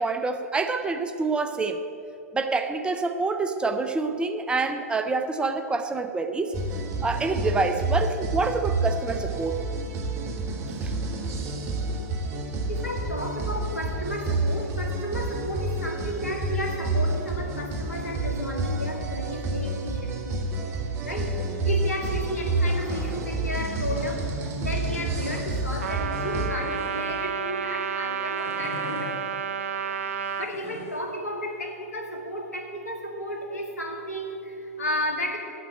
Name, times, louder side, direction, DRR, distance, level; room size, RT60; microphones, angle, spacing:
voice 1, 0.0-1.8 2.3-6.6 7.0-9.6 10.8-10.9, right 3 dB, 10° right, 8 dB, 0.6 m, -27 dB
sound 1, 6.5-26.5, right 2 dB, 35° right, 1.2 m, -29 dB
voice 2, 12.7-20.5 21.0-29.2 29.7-35.4, equal, 80° left, 2 dB, 2.0 m, -33 dB
sound 2, 22.3-23.2 23.8-24.2 25.1-25.5 26.2-27.2 28.4-29.1 30.3-31.0, left 2 dB, 55° left, 2.1 m, -40 dB
Trumpet, 25.8-30.5, right 7 dB, 65° right, 0.6 m, -31 dB
8.9 x 8.5 x 8.0 m, 2.7 s
figure-of-eight pair, 110°, 8 cm